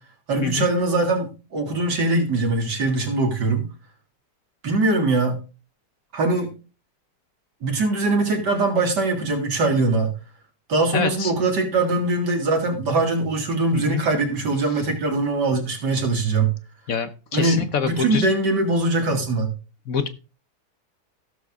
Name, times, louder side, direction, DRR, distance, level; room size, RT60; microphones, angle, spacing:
voice 1, 0.3-3.7 4.6-5.4 6.1-6.5 7.6-10.1 10.7-16.5 17.3-19.5, right 3 dB, 70° right, 3 dB, 2.7 m, -22 dB
voice 2, 10.9-11.3 13.7-14.0 16.9-18.3 19.9-20.1, left 7 dB, 60° left, 9 dB, 1.1 m, -25 dB
16.0 x 6.7 x 3.6 m, 0.34 s
omnidirectional pair, 1.9 m